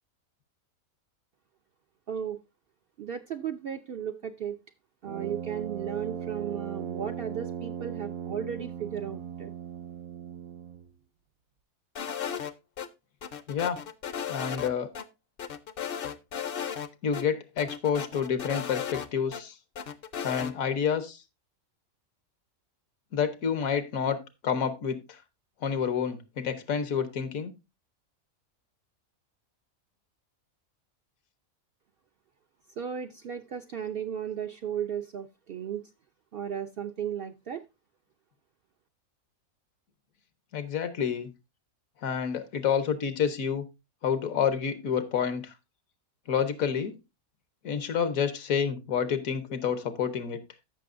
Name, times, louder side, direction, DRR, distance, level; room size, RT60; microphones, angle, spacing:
voice 1, 2.1-2.4 3.0-4.6 5.0-9.5 32.8-35.8 36.3-37.6, right 8 dB, 65° right, 7 dB, 0.6 m, -35 dB
Brass instrument, 5.0-10.9, right 8 dB, 85° right, 1.2 m, -38 dB
sound 1, 12.0-12.9 13.2-14.7 15.0-15.1 15.4-16.9 17.1-17.2 17.6-19.4 19.8-20.5, left 8 dB, 50° left, 0.7 m, -35 dB
voice 2, 14.3-14.9 17.0-19.5 20.2-21.2 23.1-25.2 25.6-27.5 40.5-41.3 42.0-43.6 44.0-45.5 46.3-46.9 47.6-50.4, left 7 dB, 75° left, 11 dB, 1.4 m, -29 dB
14.5 x 6.0 x 2.5 m, 0.24 s
omnidirectional pair, 1.5 m